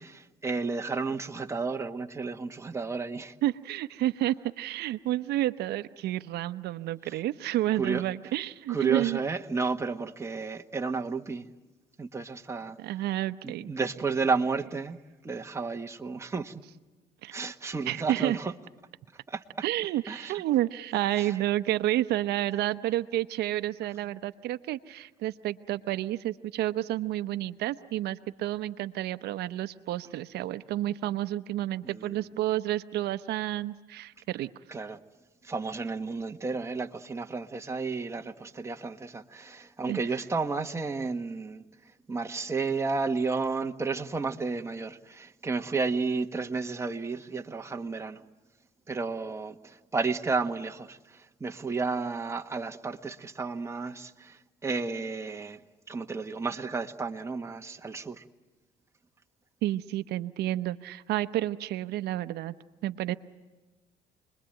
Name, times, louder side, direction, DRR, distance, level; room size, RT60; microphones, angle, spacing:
voice 1, 0.0-3.3 7.8-8.0 8.7-11.4 12.0-12.8 13.4-15.0 15.2-16.6 17.3-18.5 19.3-19.4 20.1-20.4 21.2-21.4 31.8-32.2 34.7-35.0 35.4-41.6 42.1-48.2 48.9-55.6 55.9-58.2, right 4 dB, 15° right, 1.5 m, -32 dB
voice 2, 3.4-9.2 12.8-13.7 17.2-17.4 17.9-18.4 19.6-34.5 39.9-40.0 59.6-62.5 62.8-63.1, right 14 dB, 75° right, 0.8 m, -30 dB
29.5 x 22.0 x 8.9 m
cardioid pair, 110°, 17 cm